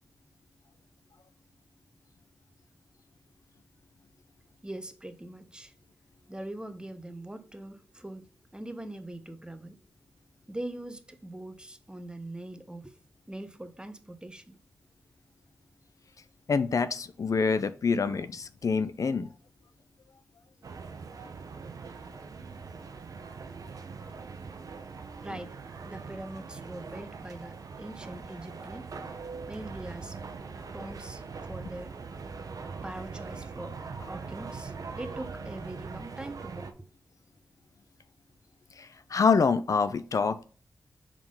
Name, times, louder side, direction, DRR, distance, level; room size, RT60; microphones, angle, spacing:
voice 1, 4.6-5.7 6.3-9.8 10.5-13.0 13.3-14.6 25.2-25.5 25.8-28.9 29.5-30.2 30.7-31.9 32.8-33.8 34.1-36.9, right 1 dB, 15° right, 0.8 m, -42 dB
voice 2, 16.5-19.3 38.8-40.4, left 5 dB, 60° left, 0.4 m, -26 dB
sound 1, 20.6-36.7, right 5 dB, 65° right, 0.7 m, -42 dB
4.9 x 3.7 x 5.3 m
cardioid pair, 55°, 6 cm